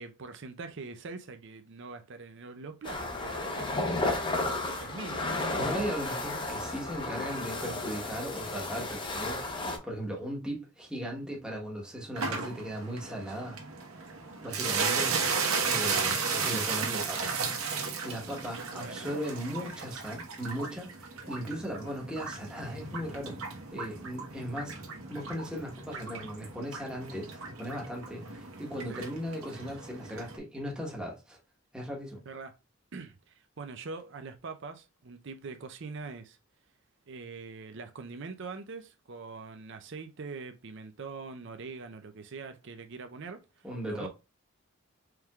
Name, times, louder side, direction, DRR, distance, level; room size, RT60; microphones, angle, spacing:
voice 1, 0.0-4.4 4.8-5.3 18.7-19.2 19.6-19.7 28.9-29.0 32.3-32.6 32.9-36.4 37.1-44.1, right 4 dB, 55° right, 0.5 m, -43 dB
sound 1, 2.8-9.8, left 2 dB, 20° left, 0.7 m, -33 dB
voice 2, 5.5-13.6 14.4-15.1 15.6-17.4 18.0-24.8 25.1-31.4 31.7-32.2 43.6-44.1, equal, 5° right, 1.1 m, -37 dB
sound 2, 12.2-30.4, right 5 dB, 80° right, 1.1 m, -35 dB
4.6 x 3.5 x 2.3 m
head